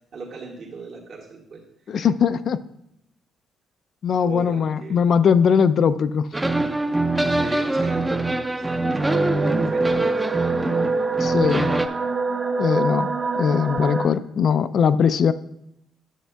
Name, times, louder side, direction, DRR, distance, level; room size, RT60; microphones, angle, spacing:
voice 1, 0.1-2.0 4.2-5.0 7.2-10.1, right 4 dB, 65° right, -3 dB, 1.7 m, -38 dB
voice 2, 1.9-2.6 4.0-6.3 11.2-11.7 12.6-13.1 13.4-15.3, left 7 dB, 60° left, 14 dB, 0.4 m, -20 dB
sound 1, 6.3-11.9, right 2 dB, 15° right, 0.5 m, -24 dB
sound 2, 9.0-14.1, right 3 dB, 35° right, 0.8 m, -25 dB
10.0 x 7.7 x 2.2 m, 0.79 s
cardioid pair, 90°, 0 cm